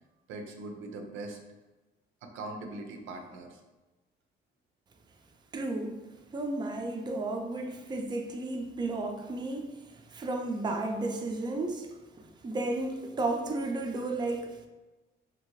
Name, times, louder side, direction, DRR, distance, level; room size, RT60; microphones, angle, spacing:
voice 1, 0.3-1.4 2.2-3.6, right 2 dB, 90° right, 0.5 m, -41 dB
voice 2, 5.5-6.0 6.3-14.7, right 2 dB, 20° right, 0.4 m, -33 dB
2.8 x 2.6 x 3.0 m
cardioid pair, 90°, 20 cm